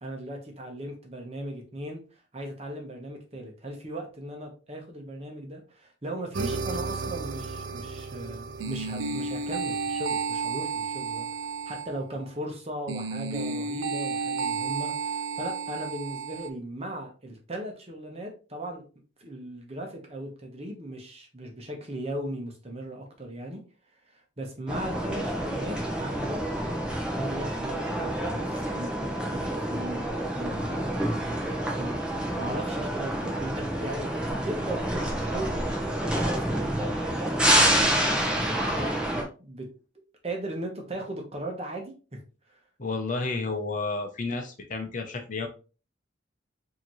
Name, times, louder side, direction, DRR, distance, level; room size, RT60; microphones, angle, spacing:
voice 1, 0.0-2.0 2.3-11.2 11.7-18.8 19.2-23.6 24.1-35.7 36.0-39.7 40.2-42.2 42.5-42.6, right 1 dB, 30° right, 2 dB, 1.1 m, -38 dB
sound 1, 6.3-12.0 12.9-16.5, right 4 dB, 90° right, 0.5 m, -32 dB
sound 2, 24.7-39.2, right 1 dB, 5° right, 0.9 m, -28 dB
voice 2, 42.8-45.5, left 3 dB, 40° left, 4 dB, 0.7 m, -31 dB
5.0 x 2.9 x 3.0 m, 0.35 s
head